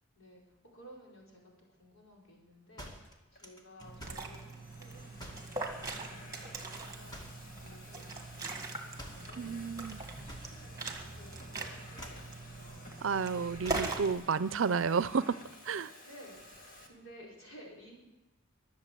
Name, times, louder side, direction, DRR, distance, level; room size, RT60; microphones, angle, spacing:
voice 1, 0.1-7.2 7.6-8.7 9.1-9.6 10.1-12.9 16.0-18.0, equal, 85° left, -3 dB, 4.8 m, -56 dB
sound 1, 2.8-4.3 5.2-5.6 7.1-7.5 9.0-9.3 10.3-11.1 11.3-11.6 11.9-12.3 13.6-14.0, equal, 20° left, 2.0 m, -49 dB
Domestic sounds home sounds, 3.0-3.4 4.2-16.9, left 1 dB, 45° left, 2.2 m, -53 dB
Liquid, 3.8-14.1, right 3 dB, 15° right, 1.9 m, -41 dB
voice 2, 9.4-10.0 13.0-15.4 15.6-15.9, right 5 dB, 70° right, 16 dB, 0.5 m, -31 dB
22.5 x 7.7 x 7.6 m, 1.0 s
head